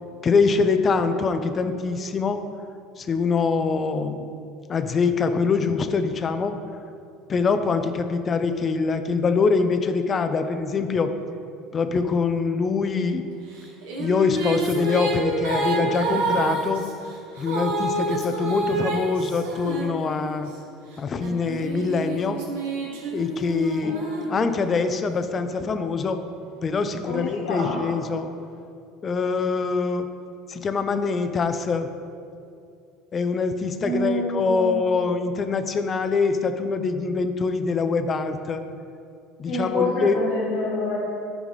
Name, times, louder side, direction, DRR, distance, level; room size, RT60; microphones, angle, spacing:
voice 1, 0.2-2.4 3.0-4.3 4.7-6.6 7.3-11.1 11.7-13.3 14.0-16.8 17.4-20.5 21.0-22.4 23.1-24.0 24.3-26.2 26.6-28.3 29.0-30.1 30.5-31.9 33.1-38.6 39.4-40.2, left 4 dB, 35° left, 8 dB, 0.6 m, -24 dB
Female singing, 13.5-20.5 21.2-24.9, right 2 dB, 90° right, 1.4 m, -28 dB
voice 2, 27.1-27.8 33.8-34.8 39.5-40.9, left 1 dB, 85° left, -8 dB, 1.9 m, -27 dB
10.5 x 4.8 x 4.1 m, 2.4 s
supercardioid pair, 100°, 0 cm